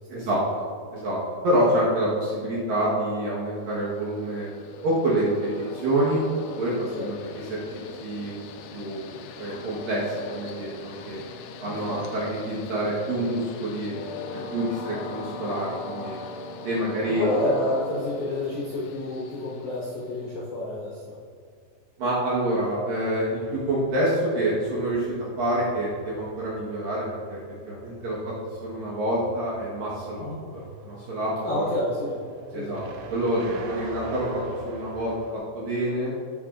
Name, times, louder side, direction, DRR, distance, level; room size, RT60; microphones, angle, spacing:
voice 1, 0.1-0.4 0.9-1.2 1.4-4.5 4.8-5.3 5.7-6.2 6.6-7.6 8.0-8.4 8.7-9.1 9.4-11.2 11.6-13.9 14.3-16.2 16.6-17.2 22.0-27.4 27.7-28.3 28.6-31.6 32.5-32.8 33.1-35.1 35.5-36.1, right 1 dB, 65° right, -7 dB, 2.5 m, -27 dB
Train, 3.6-20.3, left 4 dB, 90° left, 2.4 m, -40 dB
voice 2, 11.6-12.1 17.1-21.2 30.2-30.4 31.4-32.2 32.5-32.8, left 1 dB, 60° left, -7 dB, 2.0 m, -29 dB
sound 1, 20.7-35.4, right 3 dB, 85° right, 3.1 m, -43 dB
11.5 x 8.2 x 2.5 m, 2.1 s
omnidirectional pair, 5.4 m